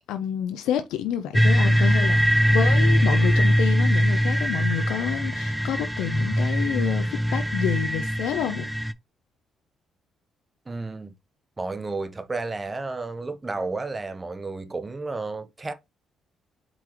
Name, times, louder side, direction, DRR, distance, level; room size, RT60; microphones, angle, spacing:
voice 1, 0.1-8.7, left 10 dB, 90° left, 0.5 m, -29 dB
sound 1, 1.3-8.9, equal, 5° right, 0.4 m, -21 dB
voice 2, 10.7-11.1 11.6-15.7, right 3 dB, 25° right, 0.7 m, -32 dB
4.6 x 3.8 x 2.9 m
cardioid pair, 90°, 0 cm